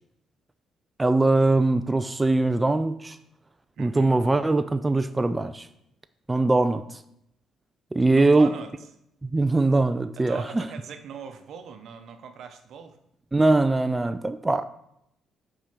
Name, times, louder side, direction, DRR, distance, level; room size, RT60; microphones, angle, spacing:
voice 1, 1.0-3.2 3.8-5.7 6.3-7.0 7.9-8.5 9.2-10.6 13.3-14.6, right 2 dB, 20° right, 0.4 m, -22 dB
voice 2, 3.8-4.2 8.1-8.9 10.2-13.0, right 6 dB, 70° right, 0.8 m, -40 dB
6.0 x 4.8 x 5.9 m
supercardioid pair, 65°, 0 cm